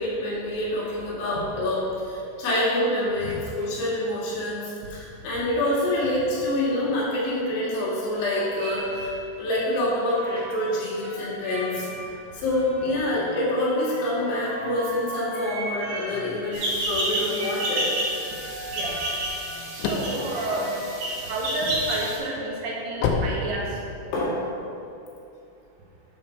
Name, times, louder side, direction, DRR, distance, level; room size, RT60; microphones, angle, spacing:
voice 1, 0.0-9.1 9.4-11.9 12.3-17.9 24.1-24.4, left 1 dB, 70° left, -8 dB, 4.9 m, -26 dB
voice 2, 3.2-3.7 10.3-10.5 18.7-19.0 19.7-23.8, right 1 dB, 80° right, -3 dB, 2.0 m, -31 dB
sound 1, 5.9-6.3 7.2-21.4, right 1 dB, 45° right, 1.9 m, -39 dB
sound 2, 16.5-22.2, right 1 dB, 60° right, 4.2 m, -30 dB
sound 3, 19.3-21.5 22.0-24.2, left 4 dB, 90° left, 2.5 m, -28 dB
9.2 x 7.1 x 4.4 m, 2.6 s
omnidirectional pair, 5.8 m